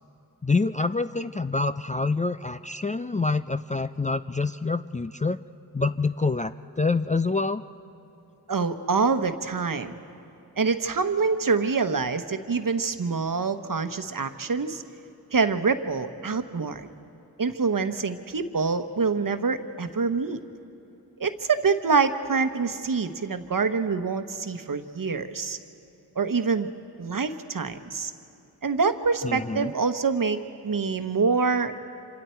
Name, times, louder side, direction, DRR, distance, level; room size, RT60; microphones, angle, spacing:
voice 1, 0.4-5.4 5.7-7.6 29.2-29.7, left 3 dB, 20° left, 11 dB, 0.4 m, -26 dB
voice 2, 8.5-10.0 10.6-14.8 15.3-16.9 17.4-20.4 21.2-25.6 26.2-26.7 27.0-28.1 28.6-30.4 30.6-31.8, right 4 dB, 55° right, 9 dB, 1.1 m, -25 dB
27.0 x 26.5 x 4.5 m, 2.9 s
wide cardioid pair, 65°, 40 cm